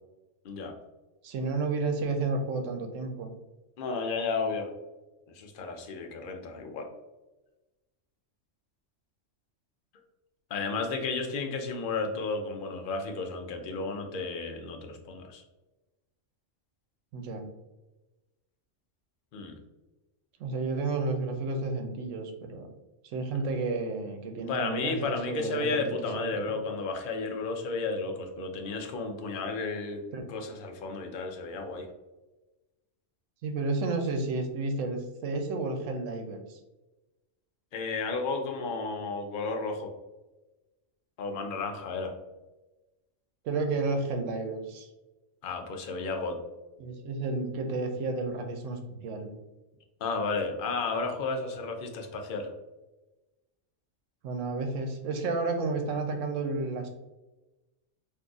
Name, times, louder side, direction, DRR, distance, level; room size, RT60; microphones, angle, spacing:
voice 1, 0.4-0.8 3.8-4.7 5.3-6.9 10.5-15.4 19.3-19.5 24.5-30.0 30.3-31.9 37.7-39.9 41.2-42.1 45.4-46.4 50.0-52.5, left 4 dB, 55° left, 4 dB, 0.6 m, -33 dB
voice 2, 1.2-3.3 17.1-17.5 20.4-22.7 23.0-26.5 30.1-30.3 33.4-36.6 43.4-44.9 46.8-49.3 54.2-56.9, right 3 dB, 80° right, 5 dB, 0.9 m, -31 dB
3.9 x 2.6 x 2.3 m, 1.1 s
omnidirectional pair, 1.3 m